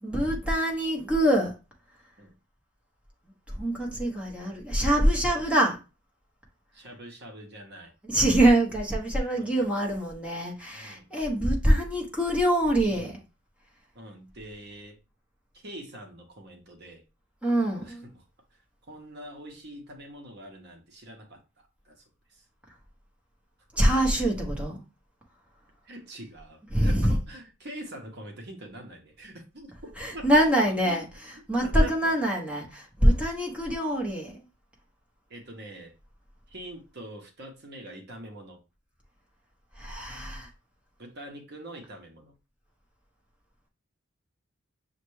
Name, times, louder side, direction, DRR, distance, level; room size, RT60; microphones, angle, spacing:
voice 1, 0.0-1.5 3.5-5.8 8.0-13.2 17.4-18.1 23.7-24.8 26.7-27.1 30.0-34.4 39.8-40.5, right 1 dB, 5° right, 0.9 m, -24 dB
voice 2, 6.7-7.9 9.3-9.7 10.7-11.1 12.9-13.2 13.9-15.0 15.5-17.0 17.8-18.2 18.8-22.0 22.3-22.4 24.1-24.2 25.8-31.0 31.6-32.2 35.3-35.9 36.5-38.6 41.0-42.3, right 1 dB, 50° right, 0.8 m, -44 dB
6.4 x 2.2 x 3.1 m
head